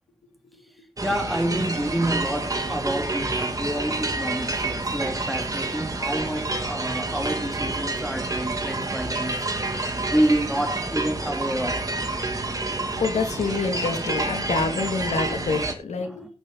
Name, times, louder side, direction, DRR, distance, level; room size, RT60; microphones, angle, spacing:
voice 1, 1.0-9.5 10.1-11.9, right 1 dB, ahead, 2.6 m, -28 dB
sound 1, 1.0-15.7, right 2 dB, 30° right, 2.6 m, -28 dB
voice 2, 12.6-16.3, left 4 dB, 90° left, 2.5 m, -27 dB
16.5 x 9.3 x 4.0 m
wide cardioid pair, 85°, 11 cm